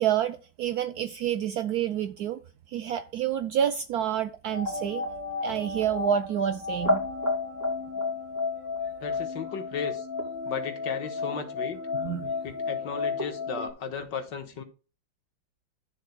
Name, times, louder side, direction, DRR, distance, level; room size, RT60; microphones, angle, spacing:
voice 1, 0.0-2.4 2.7-5.0 5.4-7.0 11.9-12.3, right 9 dB, 75° right, 0.9 m, -28 dB
sound 1, 4.5-13.7, left 3 dB, 10° right, 2.2 m, -32 dB
voice 2, 9.0-10.1 10.5-11.8 12.4-14.6, left 6 dB, 70° left, 1.8 m, -35 dB
12.5 x 6.8 x 2.2 m
omnidirectional pair, 2.1 m